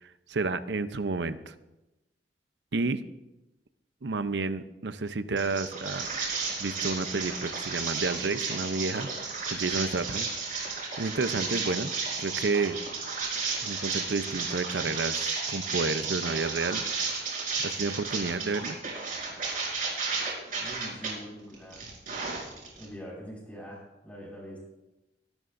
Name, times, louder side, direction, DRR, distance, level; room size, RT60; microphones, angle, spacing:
voice 1, 0.0-1.5 2.7-3.0 4.0-6.1 6.6-9.1 9.5-10.3 10.6-10.7 11.0-11.9 12.2-12.8 13.6-16.8 17.6-18.8, right 3 dB, 75° right, 12 dB, 0.7 m, -30 dB
sound 1, 5.4-21.1 21.5-22.8, right 4 dB, 50° right, 4.5 m, -33 dB
voice 2, 20.6-21.8 22.7-24.6, equal, 10° left, -4 dB, 5.6 m, -43 dB
24.0 x 12.5 x 2.6 m, 0.99 s
head